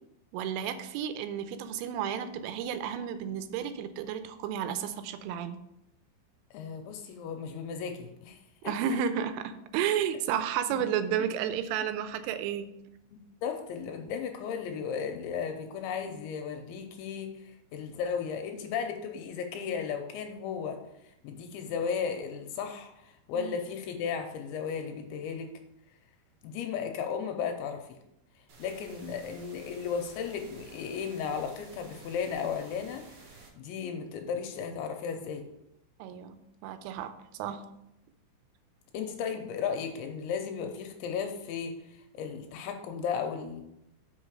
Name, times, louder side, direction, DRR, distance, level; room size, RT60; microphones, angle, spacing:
voice 1, 0.3-5.6 8.6-12.7 23.3-23.6 36.0-37.6, right 8 dB, 85° right, 10 dB, 3.2 m, -32 dB
voice 2, 6.5-8.4 8.6-8.7 10.7-10.8 13.1-20.8 21.2-25.6 26.4-28.0 28.6-33.1 33.6-35.4 38.9-43.6, left 6 dB, 85° left, 5 dB, 2.8 m, -35 dB
sound 1, 28.5-33.5, right 3 dB, 60° right, 3.1 m, -52 dB
6.4 x 5.6 x 6.2 m, 0.82 s
omnidirectional pair, 5.6 m